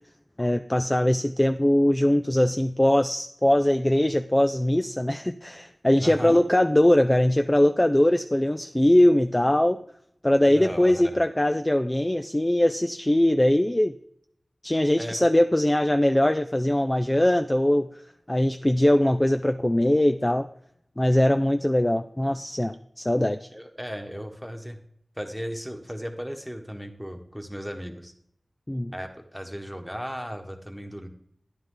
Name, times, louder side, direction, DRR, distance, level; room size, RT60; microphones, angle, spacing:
voice 1, 0.4-9.8 10.2-14.0 14.6-17.9 18.3-20.5 21.0-23.5 28.7-28.9, left 1 dB, 20° left, 8 dB, 0.4 m, -21 dB
voice 2, 6.0-6.4 10.5-11.2 15.0-15.3 23.5-24.8 25.2-28.1 28.9-31.1, equal, ahead, 5 dB, 1.4 m, -36 dB
13.0 x 10.5 x 3.9 m, 0.71 s
wide cardioid pair, 80°, 0 cm